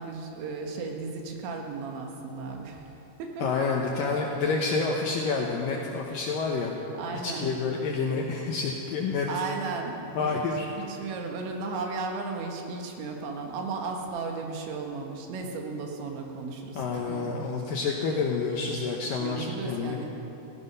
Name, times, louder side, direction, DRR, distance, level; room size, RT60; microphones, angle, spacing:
voice 1, 0.0-2.9 3.2-3.5 7.0-7.5 9.3-10.5 10.8-17.3 19.2-20.1, right 4 dB, 80° right, 2 dB, 3.8 m, -35 dB
voice 2, 3.4-6.7 7.2-9.3 10.2-10.7 16.7-20.0, left 4 dB, 75° left, 0 dB, 2.1 m, -28 dB
16.5 x 15.5 x 5.5 m, 2.9 s
omnidirectional pair, 5.2 m